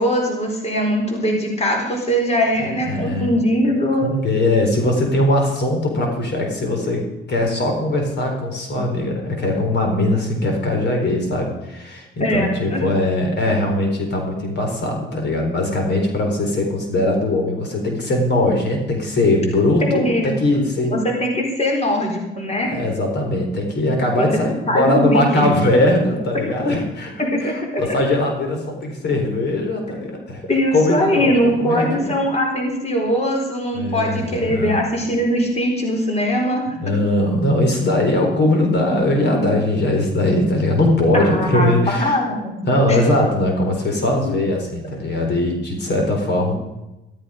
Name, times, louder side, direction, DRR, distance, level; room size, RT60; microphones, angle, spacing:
voice 1, 0.0-4.1 12.2-12.8 19.8-20.3 20.8-22.7 24.2-24.4 24.7-25.6 27.2-27.8 30.5-36.6 41.1-42.5 42.9-43.0, equal, 35° left, 1 dB, 4.0 m, -21 dB
voice 2, 2.8-3.3 4.0-20.9 22.7-30.4 30.7-32.2 33.7-34.8 36.7-42.2 42.6-46.6, left 1 dB, 60° left, 2 dB, 4.2 m, -20 dB
14.0 x 13.5 x 5.1 m, 0.97 s
cardioid pair, 90°, 20 cm